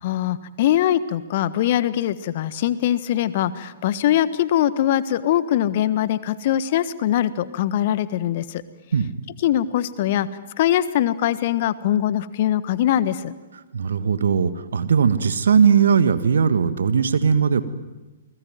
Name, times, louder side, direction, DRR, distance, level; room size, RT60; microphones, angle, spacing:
voice 1, 0.0-8.6 9.4-10.3 10.6-13.3, left 11 dB, 45° left, 15 dB, 1.4 m, -22 dB
voice 2, 13.7-17.6, right 6 dB, 65° right, 12 dB, 1.7 m, -19 dB
28.5 x 20.5 x 9.4 m, 1.1 s
figure-of-eight pair, 120°, 0 cm